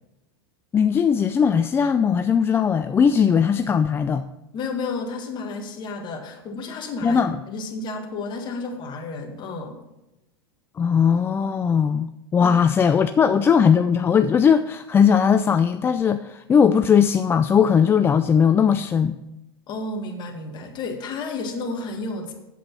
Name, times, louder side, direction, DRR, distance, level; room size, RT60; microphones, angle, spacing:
voice 1, 0.7-4.3 7.0-7.4 10.8-19.1, left 7 dB, 20° left, 9 dB, 0.3 m, -19 dB
voice 2, 4.5-9.8 12.4-12.8 19.7-22.3, left 3 dB, 35° left, 4 dB, 1.9 m, -32 dB
8.3 x 8.0 x 5.5 m, 0.95 s
hypercardioid pair, 110°, 13 cm